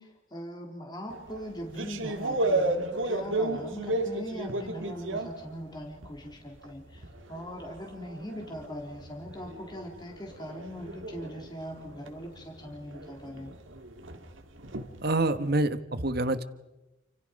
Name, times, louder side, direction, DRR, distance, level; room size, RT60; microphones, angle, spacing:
voice 1, 0.0-13.5, equal, 20° left, 1 dB, 3.8 m, -41 dB
sound 1, 1.1-6.3 6.6-15.5, right 2 dB, 85° right, 2.5 m, -34 dB
voice 2, 15.0-16.4, right 2 dB, 55° right, 11 dB, 1.4 m, -26 dB
29.5 x 27.5 x 5.4 m, 1.0 s
head